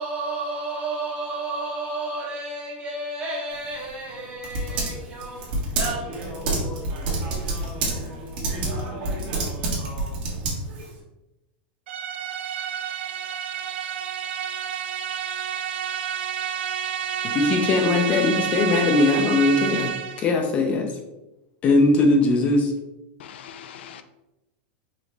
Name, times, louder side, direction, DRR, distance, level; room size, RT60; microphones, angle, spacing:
voice 1, 0.0-9.4, right 2 dB, 20° right, 0.9 m, -33 dB
Typing, 3.5-11.0, right 2 dB, 55° right, 1.4 m, -29 dB
sound 1, 11.9-20.3, right 9 dB, 80° right, 0.4 m, -29 dB
voice 2, 17.2-19.9 20.2-20.9 21.6-22.7, left 2 dB, 20° left, 0.5 m, -20 dB
voice 3, 23.2-24.0, left 9 dB, 80° left, 0.4 m, -42 dB
4.9 x 3.1 x 3.3 m
supercardioid pair, 165°, 6 cm